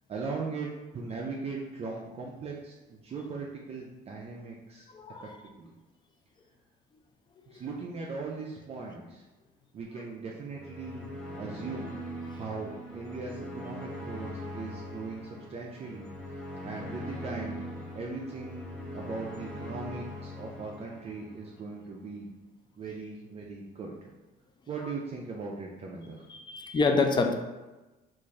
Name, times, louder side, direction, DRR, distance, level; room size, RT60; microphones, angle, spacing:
voice 1, 0.1-4.9 5.5-5.7 7.5-9.2 9.7-11.1 11.4-12.0 12.3-16.1 16.6-17.6 17.9-22.3 22.8-24.1 24.7-26.2, right 4 dB, 40° right, -2 dB, 0.5 m, -39 dB
voice 2, 4.9-5.4 8.8-8.9 24.8-24.9 26.3-27.3, left 4 dB, 25° left, 5 dB, 0.4 m, -27 dB
sound 1, 10.4-21.7, equal, 5° left, 0.8 m, -41 dB
3.5 x 2.5 x 3.1 m, 1.1 s
cardioid pair, 110°, 17 cm